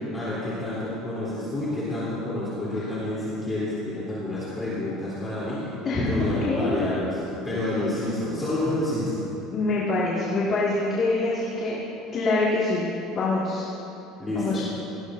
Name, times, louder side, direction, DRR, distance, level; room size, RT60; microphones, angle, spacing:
voice 1, 0.1-5.6 6.1-9.2 14.2-14.6, left 1 dB, 15° left, -10 dB, 3.4 m, -29 dB
voice 2, 5.8-7.0 9.5-11.8 12.1-12.9 13.1-13.7 14.3-14.6, left 2 dB, 35° left, -7 dB, 2.1 m, -25 dB
18.0 x 16.0 x 2.7 m, 2.9 s
cardioid pair, 155°, 0 cm